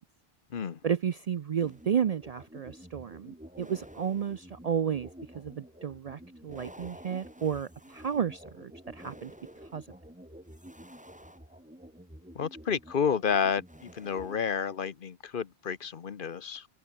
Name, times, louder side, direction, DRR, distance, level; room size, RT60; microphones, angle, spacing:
voice 1, 0.8-5.1 5.3-9.3 9.7-9.8, right 8 dB, 50° right, 0.5 m, -32 dB
sound 1, 1.6-14.4, equal, 5° right, 3.2 m, -49 dB
voice 2, 12.3-16.7, left 6 dB, 60° left, 1.0 m, -30 dB
omnidirectional pair, 1.0 m